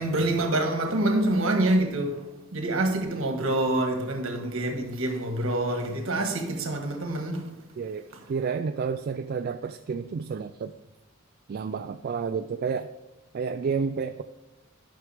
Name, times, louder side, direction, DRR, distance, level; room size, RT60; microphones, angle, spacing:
voice 1, 0.0-2.2 2.5-7.5, right 1 dB, 65° right, 1.5 m, -26 dB
voice 2, 7.8-10.7 11.5-12.9 13.3-14.2, right 5 dB, 45° right, 0.3 m, -30 dB
12.0 x 6.1 x 3.5 m
head